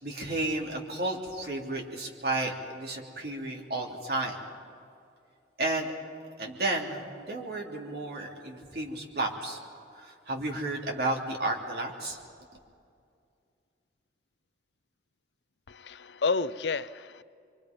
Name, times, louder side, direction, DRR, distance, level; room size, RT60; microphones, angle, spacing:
voice 1, 0.0-4.4 5.6-5.9 6.4-9.6 9.9-12.2, right 2 dB, 60° right, 0 dB, 3.2 m, -32 dB
voice 2, 15.7-17.2, left 4 dB, 80° left, 15 dB, 0.6 m, -30 dB
27.0 x 24.0 x 5.3 m, 2.4 s
head